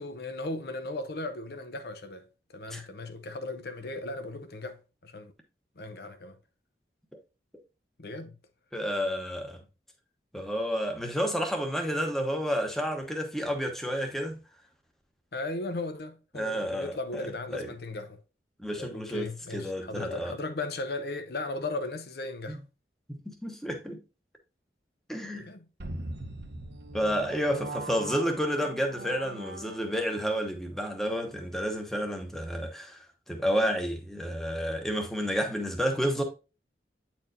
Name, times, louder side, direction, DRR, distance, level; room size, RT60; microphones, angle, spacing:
voice 1, 0.0-2.3 2.5-4.8 5.0-5.3 5.8-6.4 8.0-8.4 15.3-18.2 18.8-22.6 25.3-25.7, left 2 dB, 60° left, 0.7 m, -36 dB
voice 2, 8.7-9.6 10.3-14.4 16.3-17.7 18.6-20.3 22.5-22.6 23.1-24.0 25.1-25.5 26.9-36.2, equal, ahead, 0.9 m, -30 dB
sound 1, 25.8-30.2, right 2 dB, 70° right, 0.9 m, -40 dB
8.8 x 4.4 x 2.6 m
head